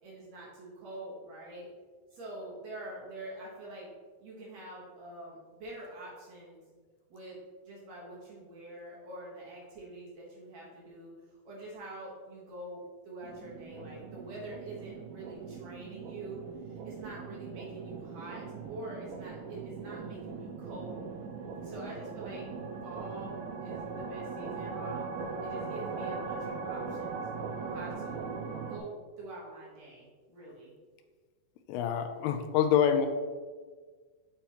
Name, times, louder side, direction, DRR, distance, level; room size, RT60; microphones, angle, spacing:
voice 1, 0.0-1.7 2.1-3.9 4.2-6.6 7.1-7.4 7.6-11.1 11.4-21.1 21.6-22.5 22.8-25.1 25.4-27.2 27.5-28.4 28.7-30.7, right 1 dB, 60° right, -5 dB, 1.9 m, -45 dB
sound 1, 13.2-28.8, right 5 dB, 80° right, 2.2 m, -40 dB
voice 2, 31.7-33.1, left 8 dB, 85° left, 7 dB, 2.5 m, -26 dB
7.2 x 5.5 x 2.9 m, 1.5 s
omnidirectional pair, 4.5 m